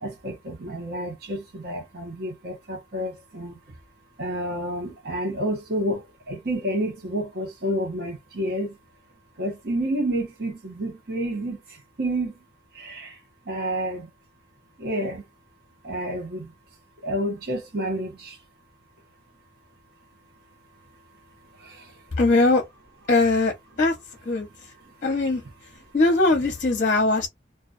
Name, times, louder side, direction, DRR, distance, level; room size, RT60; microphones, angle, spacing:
voice 1, 0.0-3.6 4.2-8.8 9.4-12.3 12.7-13.2 13.5-14.1 14.8-15.2 15.8-16.5 17.0-18.4 21.5-22.0 24.8-24.9, right 1 dB, 55° right, 0.8 m, -29 dB
voice 2, 22.2-22.6 23.1-23.9 24.2-24.5 25.0-25.4 25.9-27.3, left 2 dB, 40° left, 0.7 m, -20 dB
2.3 x 2.2 x 2.4 m
head